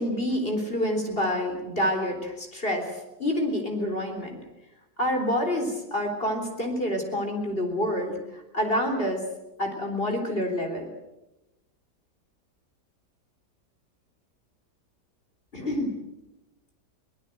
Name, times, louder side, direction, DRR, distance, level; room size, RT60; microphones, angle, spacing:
voice 1, 0.0-4.4 5.0-9.2 9.6-10.9 15.5-15.9, left 1 dB, 30° left, 3 dB, 4.0 m, -28 dB
23.5 x 19.0 x 7.9 m, 0.96 s
omnidirectional pair, 1.9 m